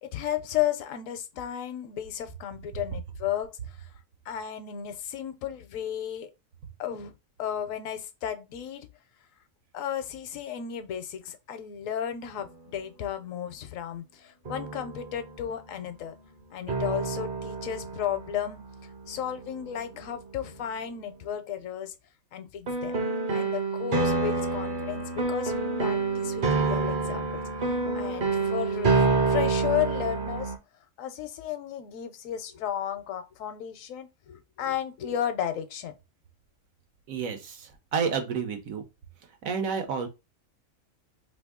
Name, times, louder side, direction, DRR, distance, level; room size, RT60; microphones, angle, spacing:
voice 1, 0.0-3.8 4.3-6.3 6.8-7.1 7.4-8.9 9.7-16.2 16.5-18.6 19.1-21.9 22.3-23.0 23.3-30.5 31.0-35.9, left 10 dB, 75° left, 1.0 m, -34 dB
sound 1, 12.4-12.5 14.5-15.5 16.7-20.0 22.7-30.6, right 4 dB, 45° right, 0.7 m, -28 dB
voice 2, 37.1-38.8 39.4-40.1, right 6 dB, 80° right, 1.2 m, -30 dB
2.9 x 2.6 x 3.5 m
omnidirectional pair, 1.4 m